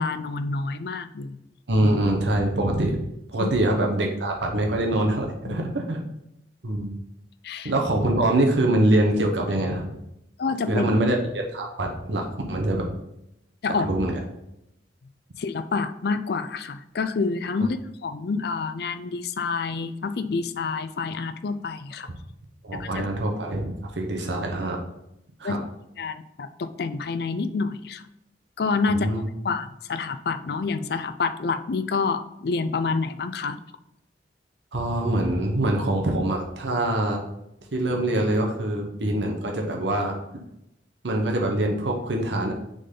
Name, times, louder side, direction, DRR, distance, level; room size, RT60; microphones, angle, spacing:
voice 1, 0.0-1.4 3.4-3.5 5.5-5.6 7.4-7.7 10.4-10.9 13.6-13.9 15.4-17.8 18.0-22.1 22.7-23.1 25.4-25.7 26.0-28.0 28.6-33.6, left 4 dB, 60° left, 11 dB, 0.4 m, -28 dB
voice 2, 1.7-3.0 3.3-6.0 6.6-7.0 7.6-9.9 10.7-12.9 13.8-14.2 22.6-24.8 25.4-25.6 28.9-29.2 34.7-37.2 37.7-40.2 41.0-42.5, right 1 dB, 85° right, 1 dB, 0.9 m, -24 dB
6.5 x 3.9 x 3.8 m, 0.84 s
head